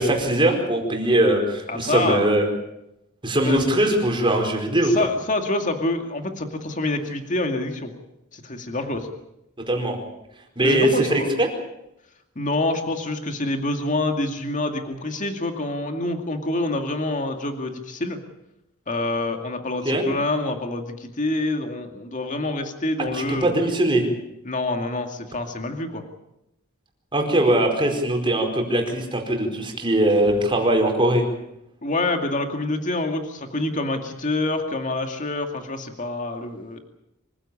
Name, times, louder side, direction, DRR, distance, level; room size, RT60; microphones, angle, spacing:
voice 1, 0.0-2.4 3.2-4.9 9.7-10.0 10.6-11.5 19.8-20.0 23.1-24.0 27.1-31.2, right 1 dB, 25° right, 2 dB, 4.8 m, -21 dB
voice 2, 1.7-2.3 3.4-3.6 4.8-7.9 8.3-9.1 10.6-11.3 12.4-18.2 18.9-23.6 24.4-26.0 31.8-36.8, left 2 dB, 35° left, 5 dB, 2.4 m, -26 dB
25.0 x 15.5 x 8.7 m, 0.85 s
head